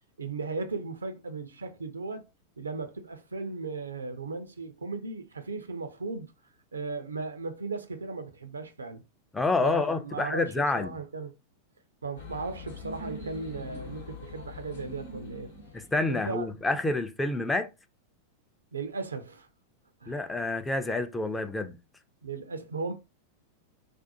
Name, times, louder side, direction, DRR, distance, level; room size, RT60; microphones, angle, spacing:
voice 1, 0.2-2.3 2.6-6.3 6.7-9.0 9.6-11.3 12.0-15.5 16.1-16.5 18.7-19.5 20.0-20.2 22.2-22.9, right 4 dB, 75° right, 0.4 m, -36 dB
voice 2, 9.3-10.9 15.7-17.7 20.1-21.8, left 2 dB, 10° left, 0.4 m, -28 dB
sound 1, 12.2-16.6, left 2 dB, 65° left, 0.9 m, -43 dB
2.5 x 2.1 x 2.7 m
figure-of-eight pair, 90°, 0 cm